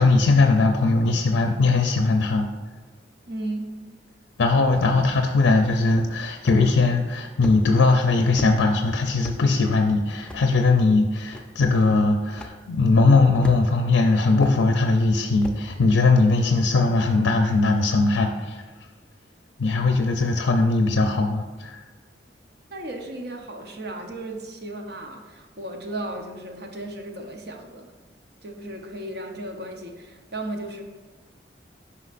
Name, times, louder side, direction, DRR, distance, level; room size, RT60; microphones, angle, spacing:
voice 1, 0.0-2.5 4.4-18.6 19.6-21.9, left 3 dB, 90° left, 4 dB, 0.5 m, -20 dB
voice 2, 3.3-3.7 22.7-27.9 28.4-30.8, right 1 dB, 60° right, 2 dB, 0.8 m, -35 dB
sound 1, 6.4-6.8 7.4-7.6 8.4-8.6 9.2-9.4 10.3-10.4 11.3-11.4 12.4-12.6 13.4-13.8 14.4-14.6 15.4-15.6, equal, 5° left, 0.5 m, -35 dB
9.6 x 5.6 x 2.5 m, 1.3 s
head